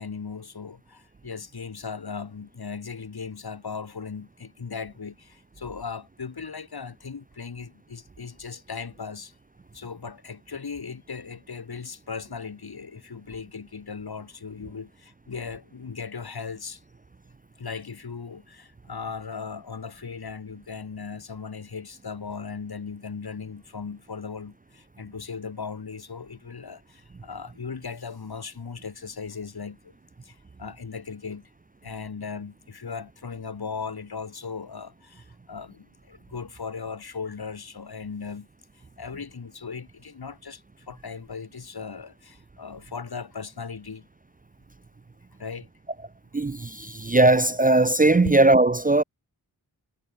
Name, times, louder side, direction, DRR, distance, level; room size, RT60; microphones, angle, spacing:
voice 1, 0.0-9.4 9.7-16.8 17.6-29.9 30.2-31.5 31.8-38.5 39.0-44.1 45.4-45.7 48.3-48.4, left 5 dB, 70° left, 1.7 m, -37 dB
voice 2, 46.3-49.0, right 2 dB, 20° right, 0.4 m, -19 dB
wide cardioid pair, 70°, 40 cm